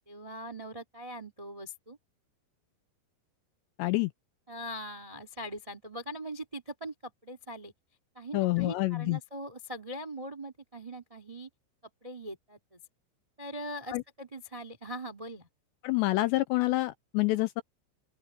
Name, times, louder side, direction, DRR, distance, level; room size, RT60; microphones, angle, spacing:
voice 1, 0.1-2.0 4.5-7.7 8.1-11.5 12.0-12.8 13.4-15.5, equal, 20° right, 1.0 m, -41 dB
voice 2, 3.8-4.1 8.3-9.2 13.9-14.0 15.8-17.6, left 19 dB, 90° left, 2.5 m, -27 dB
open air
omnidirectional pair, 5.7 m